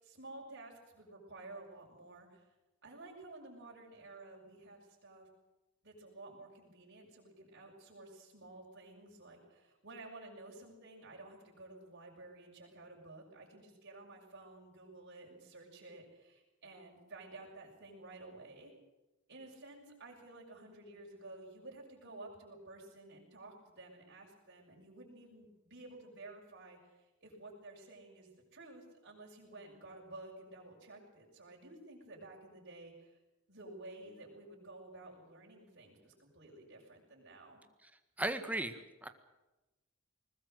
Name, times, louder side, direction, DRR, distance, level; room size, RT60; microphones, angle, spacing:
voice 1, 0.0-2.4 2.8-5.3 5.8-18.7 19.3-33.2 33.5-37.6, right 2 dB, 55° right, -3 dB, 6.6 m, -53 dB
voice 2, 38.2-39.1, right 1 dB, 5° right, 8 dB, 1.7 m, -36 dB
21.0 x 20.5 x 8.0 m, 1.0 s
head